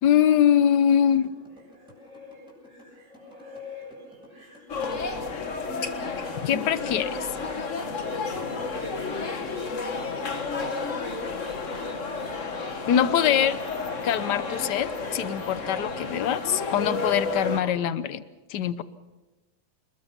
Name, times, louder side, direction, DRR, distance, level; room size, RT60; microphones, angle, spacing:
voice 1, 0.0-1.3 6.4-7.3 12.9-13.6 14.0-18.2 18.5-18.8, left 9 dB, 60° left, 14 dB, 1.4 m, -23 dB
sound 1, 0.9-6.2, equal, ahead, 6.7 m, -53 dB
sound 2, 1.0-17.7, left 2 dB, 65° right, 5.4 m, -48 dB
sound 3, 4.7-17.6, left 4 dB, 40° left, 1.7 m, -31 dB
28.5 x 21.0 x 5.7 m, 1.1 s
omnidirectional pair, 2.2 m